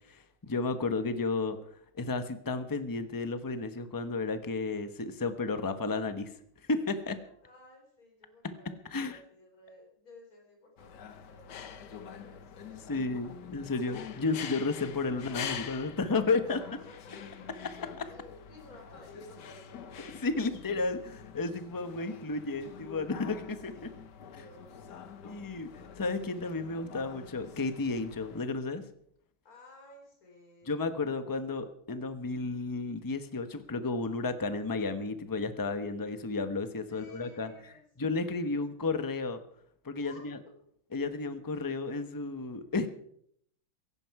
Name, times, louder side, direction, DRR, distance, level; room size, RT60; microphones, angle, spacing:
voice 1, 0.1-1.6 1.9-6.3 6.7-7.2 8.9-9.2 12.9-16.6 18.0-18.1 20.2-23.9 25.2-28.8 30.7-37.5 38.0-39.4 39.8-40.4 40.9-42.9, left 3 dB, 25° left, 10 dB, 0.4 m, -32 dB
voice 2, 7.2-13.3 16.1-16.6 16.9-17.1 18.1-20.8 24.2-25.2 29.4-30.7 36.9-37.9 38.1-38.6 40.0-40.6, left 2 dB, 40° left, 1 dB, 4.5 m, -55 dB
sound 1, 10.8-28.5, left 7 dB, 60° left, 1.5 m, -46 dB
17.0 x 15.5 x 4.8 m, 0.67 s
omnidirectional pair, 2.3 m